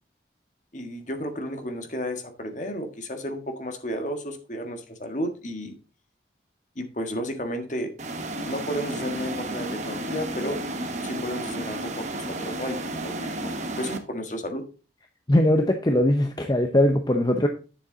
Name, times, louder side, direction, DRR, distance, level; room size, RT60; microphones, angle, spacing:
voice 1, 0.7-5.8 6.7-7.9 8.4-10.6 11.0-14.6, equal, 40° left, 5 dB, 1.6 m, -33 dB
sound 1, 8.0-14.0, right 1 dB, 40° right, 1.2 m, -32 dB
voice 2, 15.3-17.5, left 1 dB, 20° left, 5 dB, 0.7 m, -20 dB
9.4 x 7.2 x 3.9 m, 0.34 s
head